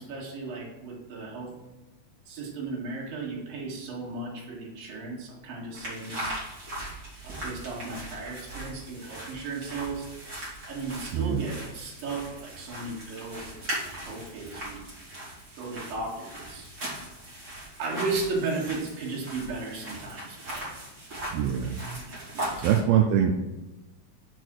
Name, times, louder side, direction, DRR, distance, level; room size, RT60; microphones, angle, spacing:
voice 1, 0.0-1.6 2.3-6.4 7.2-10.1 10.7-14.9 15.6-16.7 17.8-20.7 22.0-22.8, right 3 dB, 70° right, -3 dB, 3.5 m, -35 dB
sound 1, 5.7-22.8, right 1 dB, 30° right, 3.3 m, -39 dB
voice 2, 21.3-21.8 22.6-23.3, right 9 dB, 85° right, 2 dB, 2.5 m, -23 dB
6.6 x 5.0 x 6.3 m, 1.0 s
omnidirectional pair, 4.2 m